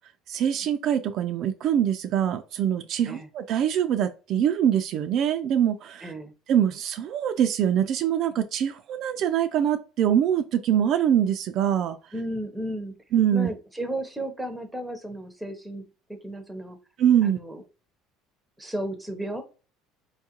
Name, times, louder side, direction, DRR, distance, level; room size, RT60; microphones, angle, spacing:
voice 1, 0.3-6.1 6.5-12.0 13.1-13.5 17.0-17.4, right 9 dB, 55° right, 0.3 m, -24 dB
voice 2, 6.0-6.3 12.1-13.0 13.3-16.8 17.2-17.6 18.6-19.4, right 1 dB, 5° right, 0.7 m, -34 dB
4.4 x 2.4 x 2.8 m
cardioid pair, 125°, 0 cm